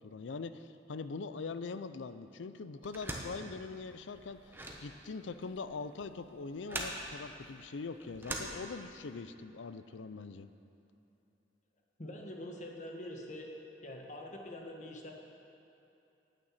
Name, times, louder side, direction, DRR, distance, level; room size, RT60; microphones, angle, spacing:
voice 1, 0.0-10.5, left 4 dB, 85° left, 12 dB, 0.5 m, -42 dB
sound 1, 2.8-9.2, right 1 dB, 10° right, 1.0 m, -43 dB
voice 2, 12.0-13.5 13.8-15.1, left 1 dB, 40° left, 0 dB, 1.4 m, -44 dB
9.7 x 9.2 x 7.4 m, 2.9 s
head